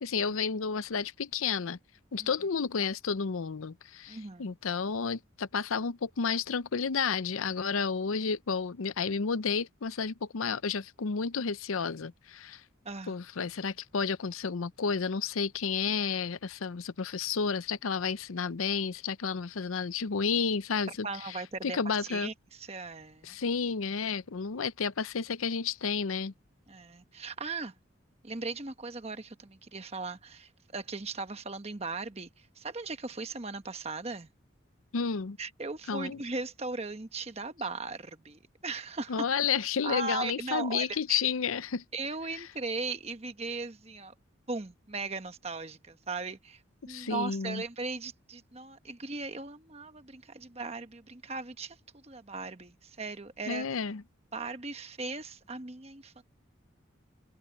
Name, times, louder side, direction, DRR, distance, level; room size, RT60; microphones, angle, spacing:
voice 1, 0.0-1.8 2.1-12.6 13.1-22.3 23.2-26.3 34.9-35.4 35.9-36.2 39.1-41.8 42.3-42.4 46.8-47.6 53.5-54.0, left 5 dB, 85° left, 0.7 m, -31 dB
voice 2, 4.1-4.5 12.8-13.2 20.9-23.4 26.7-27.7 28.2-34.3 35.4-39.3 39.8-41.2 41.9-44.1 44.5-53.7 54.3-56.2, right 3 dB, 30° right, 1.1 m, -38 dB
head